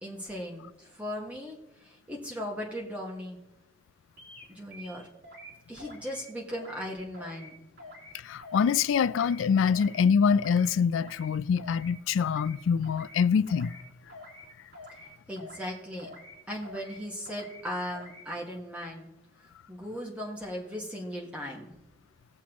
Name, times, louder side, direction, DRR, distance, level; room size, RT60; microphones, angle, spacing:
voice 1, 0.0-3.4 4.5-5.1 5.7-7.6 15.3-16.1 16.5-19.1 19.7-21.7, equal, 5° right, 1.5 m, -37 dB
sound 1, 4.2-4.4 4.7-5.5 5.8-6.2 6.5-6.9 7.1-7.5 7.8-8.1 8.4-8.8 9.0-9.4 9.7-10.0 10.3-10.7 10.9-11.3 11.6-11.9 12.2-12.6 12.8-13.2 13.5-13.8 14.1-14.4 14.7-15.1 15.4-15.7 16.0-16.3 16.6-17.0 17.2-17.6 17.9-18.2, left 2 dB, 60° right, 3.3 m, -47 dB
voice 2, 8.1-13.8, left 6 dB, 80° left, 0.3 m, -25 dB
19.0 x 7.2 x 3.0 m
head